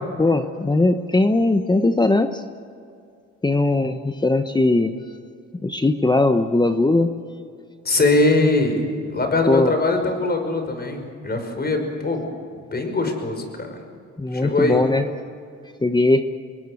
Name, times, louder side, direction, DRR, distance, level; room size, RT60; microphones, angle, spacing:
voice 1, 0.2-2.4 3.4-5.0 5.6-7.1 9.5-9.7 14.2-15.0 15.8-16.2, left 2 dB, 15° left, 8 dB, 1.0 m, -19 dB
voice 2, 7.9-8.8 9.1-12.3 12.5-13.7 14.3-14.8, left 2 dB, 30° left, 5 dB, 5.4 m, -21 dB
26.0 x 20.5 x 6.5 m, 2.3 s
cardioid pair, 90°, 30 cm